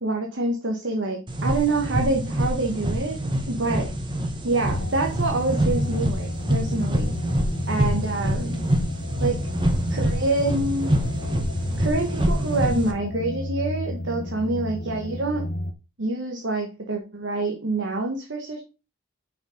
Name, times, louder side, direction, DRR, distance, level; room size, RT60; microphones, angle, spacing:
voice 1, 0.0-3.9 4.4-7.1 7.7-8.6 9.2-9.5 9.9-11.0 11.8-15.5 16.0-18.6, right 2 dB, 60° right, 1 dB, 1.3 m, -26 dB
sound 1, 1.3-12.9, right 1 dB, 20° right, 1.0 m, -26 dB
sound 2, 4.6-15.7, left 1 dB, 50° left, 0.7 m, -32 dB
5.8 x 4.6 x 5.1 m, 0.31 s
head